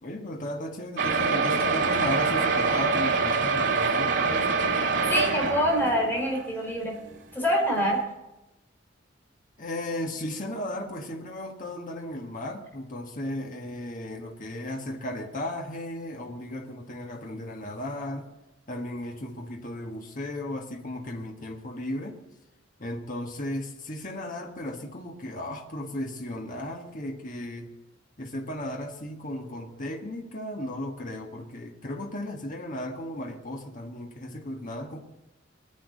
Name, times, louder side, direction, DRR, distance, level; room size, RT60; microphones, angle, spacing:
voice 1, 0.0-4.6 9.6-18.3 18.7-22.2 22.8-27.7 28.2-35.0, left 1 dB, 45° left, 1.6 m, -35 dB
sound 1, 1.0-6.4 7.1-7.2 7.4-7.5 7.9-8.0, right 4 dB, 80° right, 1.9 m, -25 dB
voice 2, 5.1-7.0 7.3-8.0, equal, 10° left, 4.4 m, -25 dB
21.0 x 10.5 x 4.1 m
head